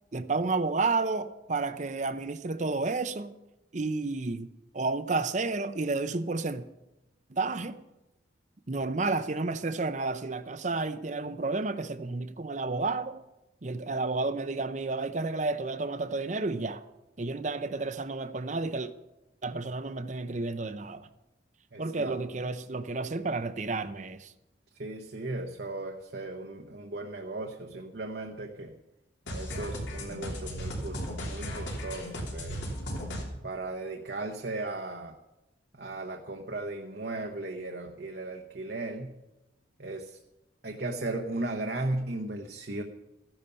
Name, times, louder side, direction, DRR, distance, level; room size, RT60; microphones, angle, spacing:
voice 1, 0.1-3.3 3.7-6.6 7.3-7.8 8.7-13.2 13.6-16.8 17.2-18.9 19.4-21.1 21.8-24.3, right 3 dB, 40° right, 0.6 m, -31 dB
voice 2, 21.7-22.2 24.7-28.7 29.3-32.6 33.4-35.2 35.7-39.1 39.8-40.2 40.6-42.8, right 2 dB, 60° right, 1.0 m, -36 dB
sound 1, 29.3-33.2, equal, 75° left, 3.4 m, -36 dB
14.5 x 11.0 x 5.6 m
head